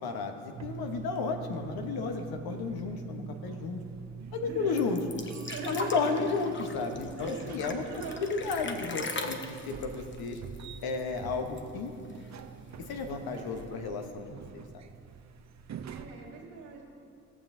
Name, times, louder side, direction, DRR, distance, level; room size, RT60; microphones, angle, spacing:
voice 1, 0.0-3.8 4.3-5.0 5.7-7.8 8.2-10.4 10.8-11.9 12.9-14.9, left 4 dB, 70° left, 5 dB, 1.1 m, -33 dB
sound 1, 0.5-16.1, right 6 dB, 45° right, 0.7 m, -44 dB
voice 2, 4.4-4.8 5.5-6.3 7.2-8.2 8.7-8.8 13.3-13.9 15.9-16.8, right 5 dB, 85° right, -4 dB, 1.9 m, -42 dB
sound 2, 4.8-11.2 11.5-11.6 11.9-12.6 13.4-13.5, left 3 dB, 30° left, 0.9 m, -40 dB
17.0 x 7.1 x 2.7 m, 2.4 s
hypercardioid pair, 50°, 39 cm